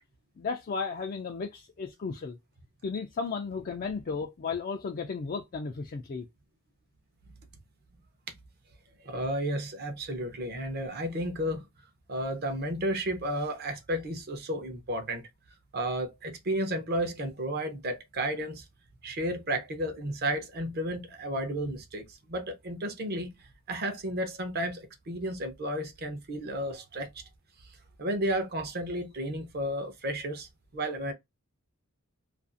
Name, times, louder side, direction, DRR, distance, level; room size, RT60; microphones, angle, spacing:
voice 1, 0.4-2.4 2.8-6.3, left 5 dB, 40° left, 0.3 m, -34 dB
voice 2, 9.0-11.7 12.1-15.2 15.7-18.6 19.0-27.1 28.0-31.1, right 1 dB, 45° right, 0.7 m, -32 dB
2.5 x 2.4 x 2.5 m
head